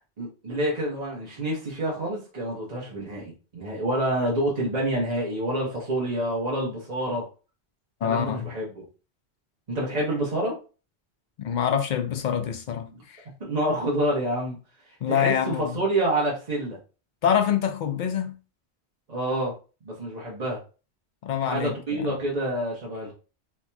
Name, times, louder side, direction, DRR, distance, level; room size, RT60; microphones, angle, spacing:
voice 1, 0.0-7.3 8.0-8.8 9.7-10.6 12.9-13.0 13.4-14.6 14.9-16.8 19.1-19.5 19.8-20.6 21.4-23.1, right 1 dB, 40° right, 0.9 m, -28 dB
voice 2, 8.0-8.5 11.4-13.2 15.0-15.8 17.2-18.4 21.2-22.2, left 8 dB, 60° left, 0.5 m, -26 dB
4.3 x 2.8 x 2.2 m
omnidirectional pair, 1.1 m